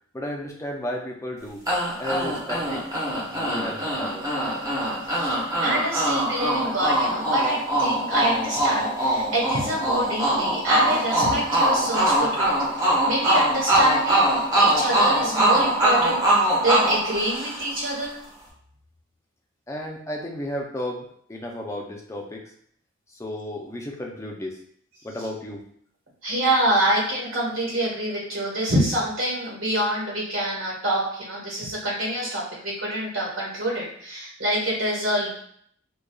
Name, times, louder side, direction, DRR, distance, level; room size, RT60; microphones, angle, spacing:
voice 1, 0.1-1.7 2.0-2.8 3.3-4.3 19.7-22.5 23.1-24.6 25.0-25.7, left 1 dB, 15° left, -1 dB, 0.5 m, -33 dB
sound 1, 1.7-17.8, right 1 dB, 20° right, 1.0 m, -23 dB
voice 2, 5.1-18.2 26.2-35.3, right 1 dB, 80° right, -3 dB, 1.4 m, -26 dB
4.9 x 2.3 x 2.3 m, 0.64 s
head